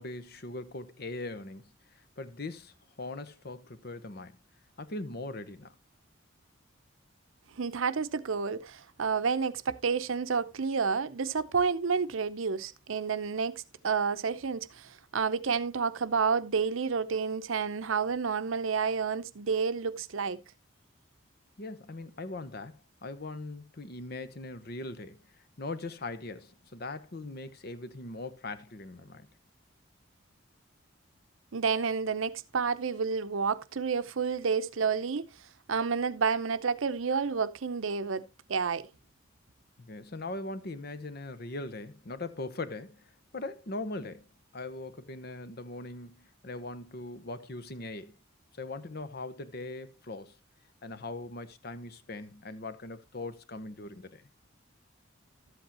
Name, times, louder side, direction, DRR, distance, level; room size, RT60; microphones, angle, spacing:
voice 1, 0.0-1.6 2.2-4.4 4.8-5.7 21.6-25.2 25.6-29.3 39.8-43.0 43.3-48.2 48.6-50.3 50.8-54.2, left 2 dB, 50° left, 0.8 m, -40 dB
voice 2, 7.6-20.4 31.5-35.2 35.7-38.9, right 5 dB, 80° right, 0.7 m, -30 dB
13.0 x 8.0 x 2.9 m
head